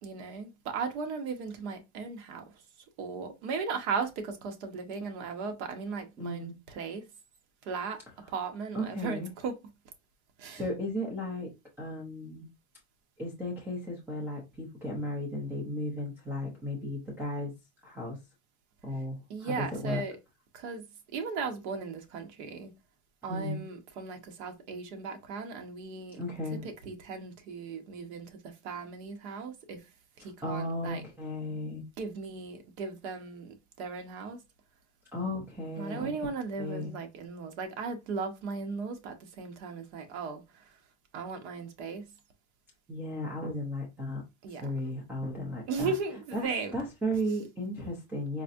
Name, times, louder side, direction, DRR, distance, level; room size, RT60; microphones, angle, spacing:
voice 1, 0.0-2.4 3.0-7.0 7.6-8.0 8.3-9.6 10.4-10.6 19.3-20.2 20.5-20.8 21.1-22.7 23.2-26.2 26.8-28.4 28.6-29.8 30.2-31.0 32.0-34.4 35.8-40.4 41.1-42.1 44.4-44.6 45.7-46.7, right 4 dB, 60° right, 1.0 m, -36 dB
voice 2, 6.2-6.6 8.7-9.3 10.5-11.5 11.8-12.5 13.2-17.5 17.8-18.2 18.8-20.0 23.3-23.6 26.1-26.7 30.2-31.8 35.1-36.1 36.6-36.9 42.9-44.2 44.6-45.9 46.3-48.4, left 1 dB, 5° right, 0.4 m, -35 dB
4.1 x 2.6 x 2.4 m
supercardioid pair, 165°, 38 cm